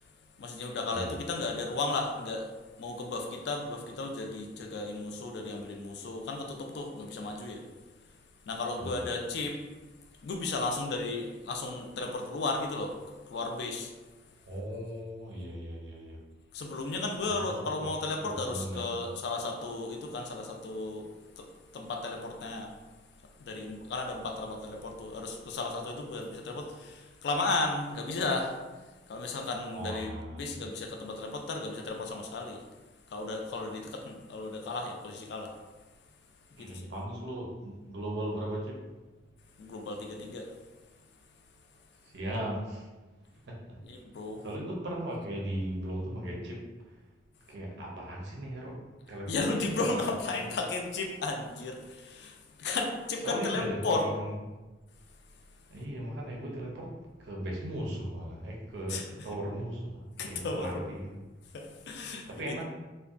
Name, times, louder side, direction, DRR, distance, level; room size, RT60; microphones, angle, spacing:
voice 1, 0.4-2.5 2.8-7.6 8.5-9.6 10.2-12.9 13.3-13.9 16.5-21.1 21.4-22.7 23.4-28.6 29.1-32.6 33.1-35.5 36.6-36.9 39.6-40.5 43.8-44.4 49.3-54.1 58.9-59.3 60.2-60.9 61.5-62.6, left 3 dB, 60° left, 2 dB, 0.3 m, -34 dB
voice 2, 14.5-16.2 17.3-17.9 18.2-18.8 29.7-30.5 36.6-38.8 42.0-42.9 43.5-43.8 44.4-46.7 47.5-48.8 49.1-49.4 53.2-54.3 55.7-56.9 57.2-61.1 62.3-62.6, right 1 dB, 65° right, -2 dB, 0.6 m, -37 dB
2.5 x 2.2 x 2.4 m, 1.2 s
head